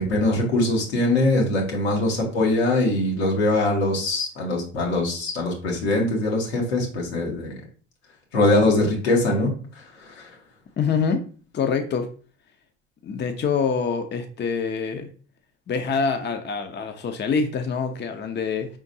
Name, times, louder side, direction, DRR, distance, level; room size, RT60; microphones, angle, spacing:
voice 1, 0.0-7.6 8.3-10.3, left 2 dB, 80° left, -1 dB, 1.7 m, -22 dB
voice 2, 10.8-11.2 11.5-12.1 13.0-15.1 15.7-18.7, left 5 dB, 35° left, 7 dB, 0.7 m, -25 dB
5.1 x 3.7 x 2.7 m, 0.40 s
hypercardioid pair, 65°, 32 cm